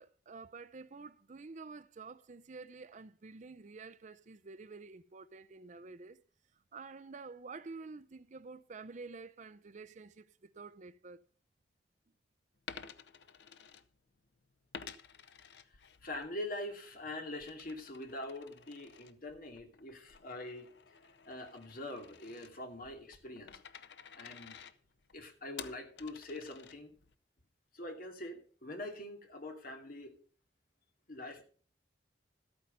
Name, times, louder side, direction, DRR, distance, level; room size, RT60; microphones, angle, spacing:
voice 1, 0.0-6.2 6.7-11.2, right 4 dB, 45° right, 0.6 m, -49 dB
Coin (dropping), 12.6-14.3 14.7-16.3 16.7-27.1, left 7 dB, 70° left, 0.8 m, -52 dB
voice 2, 15.7-21.0 21.3-23.8 24.1-24.6 25.1-26.9 27.7-30.1 31.1-31.4, left 1 dB, 50° left, 2.5 m, -44 dB
13.0 x 8.9 x 5.3 m
head